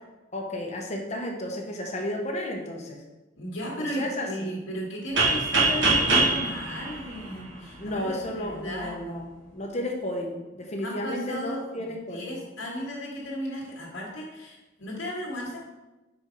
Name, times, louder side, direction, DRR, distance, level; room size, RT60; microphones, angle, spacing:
voice 1, 0.3-3.0 3.8-4.5 7.8-12.4, left 1 dB, 35° left, 1 dB, 1.0 m, -33 dB
voice 2, 3.4-8.9 10.8-15.7, equal, 85° left, -3 dB, 1.7 m, -35 dB
sound 1, 5.2-7.9, right 3 dB, 70° right, 1.7 m, -24 dB
5.7 x 4.5 x 5.2 m, 1.1 s
head